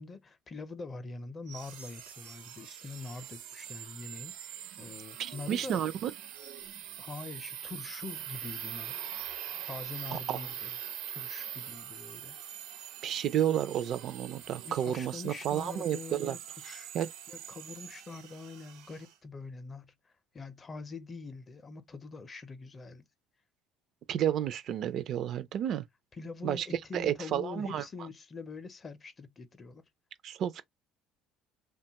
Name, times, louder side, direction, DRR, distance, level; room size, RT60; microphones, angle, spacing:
voice 1, 0.0-5.8 7.0-9.0 9.7-10.8 11.1-12.4 14.6-16.9 17.3-23.1 26.2-29.8, left 4 dB, 25° left, 0.5 m, -44 dB
sound 1, 1.5-19.1, right 10 dB, 80° right, 0.6 m, -43 dB
voice 2, 5.2-6.1 10.1-10.4 13.0-16.4 16.6-17.1 24.1-25.9 26.4-26.7 26.9-27.8 30.2-30.6, right 10 dB, 50° right, 0.3 m, -31 dB
2.9 x 2.2 x 2.8 m
cardioid pair, 135°, 0 cm